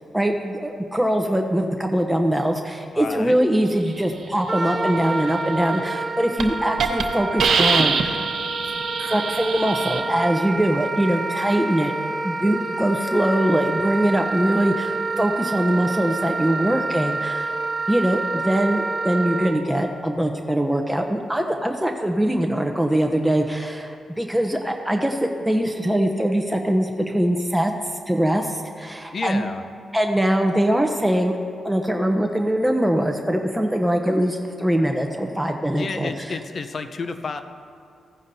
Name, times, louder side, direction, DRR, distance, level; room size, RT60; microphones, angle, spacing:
voice 1, 0.1-8.2 9.0-11.9 12.2-27.7 28.1-29.4 29.9-31.4 31.6-36.4, right 1 dB, 5° right, 3 dB, 0.7 m, -22 dB
voice 2, 2.9-3.4 29.1-29.6 35.7-37.4, left 4 dB, 55° left, 9 dB, 0.7 m, -30 dB
Wind instrument woodwind instrument, 4.5-19.5, right 3 dB, 25° right, 1.4 m, -28 dB
Hiss, 5.8-6.0 6.4-6.5 6.8-7.0 7.4-10.0, right 5 dB, 70° right, 0.9 m, -23 dB
15.5 x 9.6 x 2.7 m, 2.4 s
cardioid pair, 70°, 0 cm